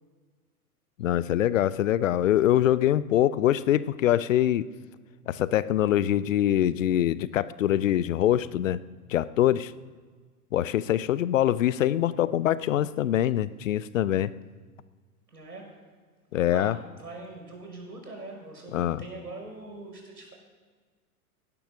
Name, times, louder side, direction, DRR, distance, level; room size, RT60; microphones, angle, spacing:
voice 1, 1.0-4.7 5.3-8.8 9.1-9.7 10.5-14.3 16.3-16.8 18.7-19.0, left 12 dB, 55° left, 17 dB, 0.7 m, -24 dB
voice 2, 15.3-15.7 16.5-20.3, right 2 dB, 85° right, 1 dB, 5.9 m, -42 dB
17.5 x 11.0 x 6.2 m, 1.5 s
figure-of-eight pair, 100°, 46 cm